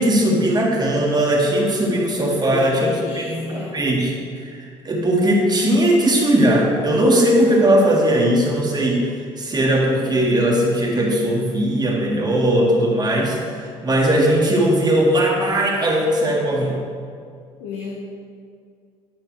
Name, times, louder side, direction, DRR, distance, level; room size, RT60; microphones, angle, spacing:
voice 1, 0.0-3.4 3.7-4.1 4.4-9.0 9.4-16.8, right 1 dB, 30° right, -2 dB, 1.6 m, -18 dB
voice 2, 2.5-3.7 17.6-18.0, left 3 dB, 85° left, -4 dB, 0.9 m, -30 dB
10.5 x 5.8 x 3.0 m, 2.2 s
hypercardioid pair, 60°, 14 cm